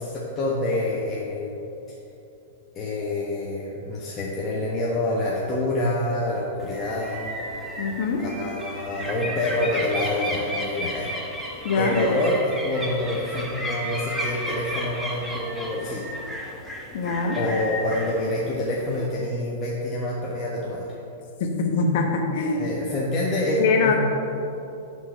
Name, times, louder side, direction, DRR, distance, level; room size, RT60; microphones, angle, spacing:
voice 1, 0.0-1.6 2.7-7.3 8.3-16.2 17.4-20.9 22.6-23.9, left 1 dB, 25° left, -6 dB, 1.1 m, -27 dB
sound 1, 6.6-19.1, equal, 5° right, 1.1 m, -33 dB
voice 2, 7.8-8.3 11.6-12.0 16.9-17.4 21.6-22.7 23.6-23.9, left 4 dB, 50° left, 2 dB, 1.1 m, -23 dB
10.0 x 3.8 x 5.2 m, 2.8 s
figure-of-eight pair, 100°, 0 cm